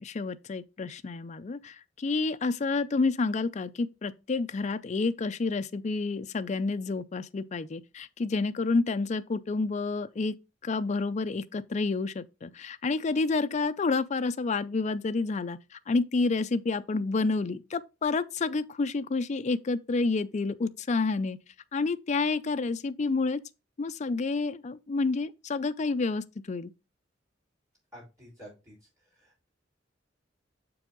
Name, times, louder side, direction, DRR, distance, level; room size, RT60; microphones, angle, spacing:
voice 1, 0.0-10.4 10.6-21.4 21.7-23.4 23.8-26.7, left 3 dB, 40° left, 0.4 m, -29 dB
voice 2, 27.9-28.7 29.1-29.5, equal, 15° right, 4.1 m, -50 dB
6.9 x 4.9 x 3.7 m
head